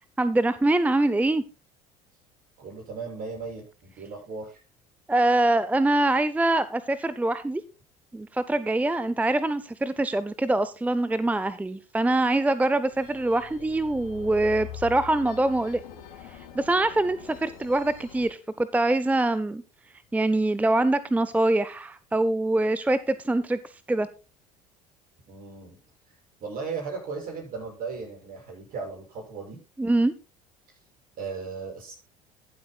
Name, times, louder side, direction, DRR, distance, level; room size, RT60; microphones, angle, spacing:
voice 1, 0.2-1.4 5.1-7.6 8.1-15.8 16.5-19.6 20.1-23.6 23.9-24.1 29.8-30.1, right 2 dB, 10° right, 15 dB, 0.5 m, -24 dB
voice 2, 2.6-4.6 25.3-25.8 26.1-26.2 26.4-29.6 31.2-31.9, right 4 dB, 50° right, 0 dB, 7.0 m, -36 dB
sound 1, 12.8-18.3, left 8 dB, 75° left, 2.7 m, -44 dB
22.5 x 7.8 x 2.3 m, 0.30 s
hypercardioid pair, 60°, 18 cm